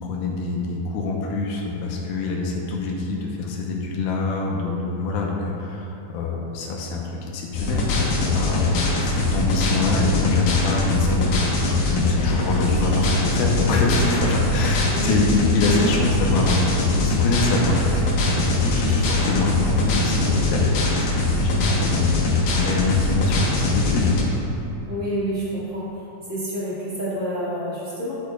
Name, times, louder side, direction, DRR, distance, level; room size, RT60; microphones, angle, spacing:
voice 1, 0.0-11.3 11.6-24.2, left 3 dB, 85° left, -2 dB, 2.6 m, -25 dB
sound 1, 7.5-24.2, left 2 dB, 70° left, 2.6 m, -22 dB
voice 2, 24.9-25.9 26.3-28.1, equal, 35° right, -10 dB, 1.1 m, -28 dB
12.5 x 6.5 x 2.3 m, 2.8 s
omnidirectional pair, 4.3 m